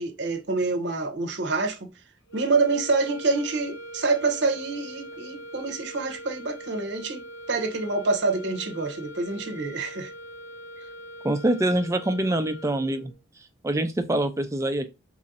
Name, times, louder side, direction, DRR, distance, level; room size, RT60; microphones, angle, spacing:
voice 1, 0.0-1.9 2.3-10.1, right 3 dB, 65° right, 0.7 m, -27 dB
sound 1, 2.3-13.2, right 1 dB, 75° left, 0.9 m, -42 dB
voice 2, 11.2-13.1 13.6-14.9, right 1 dB, 15° right, 0.3 m, -25 dB
3.0 x 2.5 x 4.0 m
head